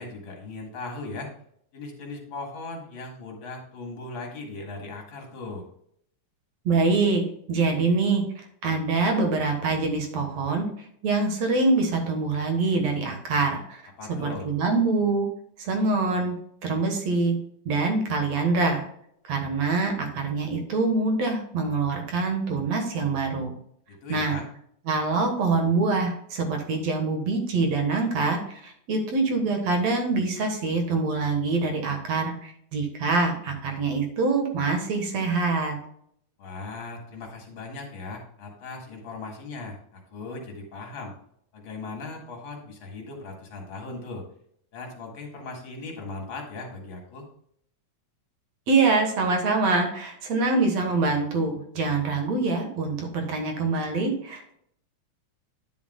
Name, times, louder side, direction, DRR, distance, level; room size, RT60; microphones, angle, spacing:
voice 1, 0.0-1.3 1.7-5.7 14.0-14.5 23.9-24.5 36.4-41.1 41.5-44.3 44.7-47.3, left 3 dB, 45° left, 1 dB, 2.2 m, -38 dB
voice 2, 6.7-13.8 14.2-15.3 15.6-16.3 16.6-17.4 17.7-18.9 19.2-23.6 24.1-24.4 24.9-35.8 48.7-54.5, right 3 dB, 60° right, 4 dB, 2.3 m, -25 dB
10.5 x 7.2 x 2.3 m, 0.69 s
omnidirectional pair, 3.7 m